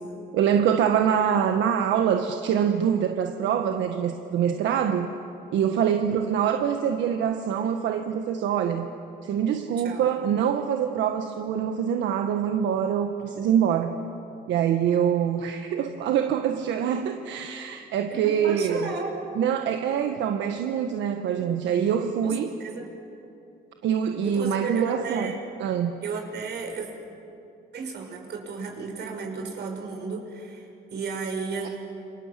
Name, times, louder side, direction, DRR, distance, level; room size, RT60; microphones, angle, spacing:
voice 1, 0.3-5.1 5.5-8.9 9.2-14.0 14.5-18.9 19.3-22.5 23.8-25.3 25.6-25.9 31.6-31.7, right 8 dB, 90° right, 5 dB, 1.4 m, -24 dB
voice 2, 18.1-19.2 22.2-22.3 22.6-22.9 24.2-25.4 26.0-26.9 27.7-31.7, right 5 dB, 65° right, 2 dB, 6.1 m, -33 dB
28.5 x 26.0 x 7.5 m, 2.7 s
cardioid pair, 100°, 18 cm